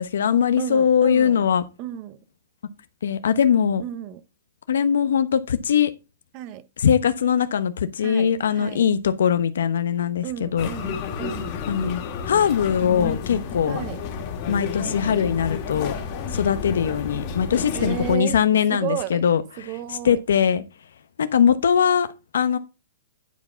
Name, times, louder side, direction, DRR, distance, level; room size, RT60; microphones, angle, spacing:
voice 1, 0.0-1.6 3.0-3.8 4.7-5.9 6.8-10.7 11.7-12.0 12.2-13.8 14.5-15.9 16.3-19.4 20.0-20.6 21.2-22.6, left 8 dB, 85° left, 1.0 m, -21 dB
voice 2, 0.6-1.4 1.8-2.2 3.8-4.2 6.3-6.6 8.0-8.9 10.2-11.6 13.7-14.0 17.7-18.4 18.7-19.2 19.6-20.2, right 12 dB, 30° right, 0.9 m, -33 dB
sound 1, 10.6-18.2, left 6 dB, 30° left, 2.1 m, -31 dB
10.5 x 4.8 x 5.8 m
hypercardioid pair, 170°, 0 cm